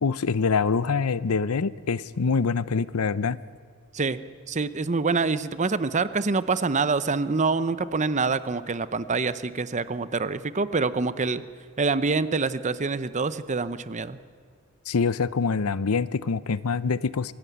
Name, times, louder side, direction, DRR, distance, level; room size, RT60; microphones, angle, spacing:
voice 1, 0.0-3.4 14.9-17.3, left 5 dB, 80° left, 17 dB, 0.7 m, -25 dB
voice 2, 4.5-11.4 11.8-14.2, right 4 dB, 35° right, 14 dB, 0.7 m, -26 dB
24.5 x 17.0 x 9.3 m, 2.1 s
head